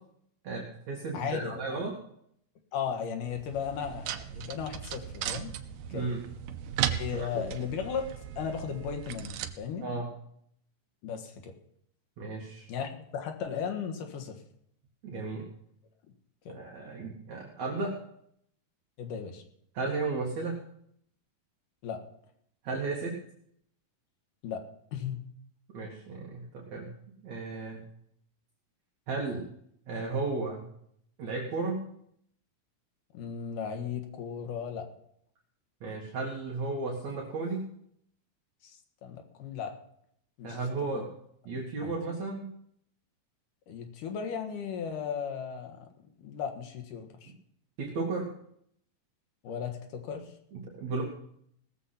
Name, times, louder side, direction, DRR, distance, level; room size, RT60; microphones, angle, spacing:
voice 1, 0.4-1.9 5.9-6.2 7.1-7.4 9.8-10.1 12.2-12.6 15.0-15.4 16.5-17.9 19.7-20.5 22.6-23.1 25.7-26.9 27.2-27.8 29.1-29.5 29.9-30.6 31.2-31.8 35.8-37.6 40.4-41.1 41.5-42.5 47.8-48.3 50.5-51.0, right 3 dB, 60° right, -2 dB, 3.0 m, -34 dB
voice 2, 1.1-1.8 2.7-5.5 5.9-6.1 6.9-8.0 8.4-9.9 11.0-11.5 12.7-14.4 16.5-16.6 19.0-19.4 21.8-22.0 24.4-24.6 24.9-25.2 33.1-34.9 38.6-39.7 40.4-40.6 40.9-41.0 41.8-42.0 43.7-45.9 46.2-47.3 49.4-50.3, left 7 dB, 75° left, 5 dB, 3.0 m, -36 dB
sound 1, 3.2-9.5, right 10 dB, 90° right, 2.5 m, -37 dB
18.5 x 7.2 x 5.8 m, 0.69 s
omnidirectional pair, 3.9 m